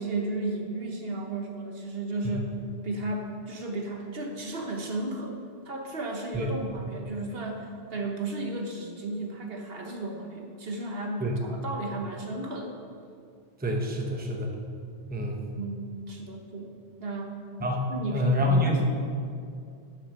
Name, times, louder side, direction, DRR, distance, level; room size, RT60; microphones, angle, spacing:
voice 1, 0.0-2.6 2.8-5.4 5.6-12.7 15.4-16.7 17.0-17.4 17.9-18.9, right 2 dB, 55° right, 2 dB, 1.3 m, -34 dB
voice 2, 13.6-14.5 15.1-15.5 17.6-18.8, equal, 10° right, 1 dB, 0.9 m, -27 dB
9.4 x 6.5 x 6.5 m, 2.4 s
omnidirectional pair, 1.2 m